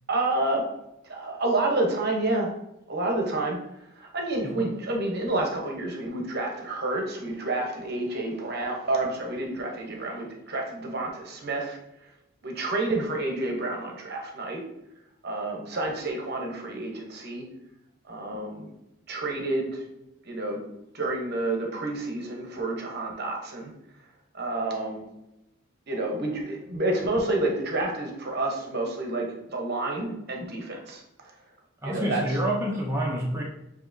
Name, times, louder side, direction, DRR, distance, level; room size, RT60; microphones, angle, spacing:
voice 1, 0.1-0.6 1.0-2.5 2.9-3.6 4.0-11.8 12.4-14.6 15.2-17.4 18.1-18.7 19.1-19.8 20.2-20.6 20.9-23.7 24.3-25.1 25.9-31.0 31.8-32.4, right 2 dB, 45° right, 0 dB, 0.8 m, -29 dB
voice 2, 31.8-33.4, right 1 dB, 10° right, -3 dB, 0.6 m, -28 dB
7.2 x 2.8 x 2.6 m, 0.89 s
head